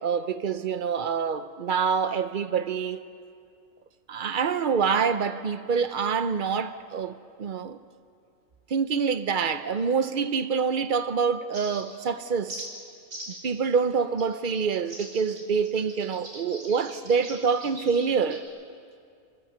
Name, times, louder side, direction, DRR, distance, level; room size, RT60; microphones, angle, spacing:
voice 1, 0.0-3.0 4.1-7.1 7.4-7.8 8.7-12.6 13.4-18.4, right 6 dB, 45° right, 0.8 m, -26 dB
sound 1, 11.5-12.0 12.5-12.7 13.1-13.5 14.2-14.3 14.9-18.4, right 1 dB, 80° right, 4.1 m, -41 dB
27.0 x 15.0 x 6.8 m
omnidirectional pair, 1.4 m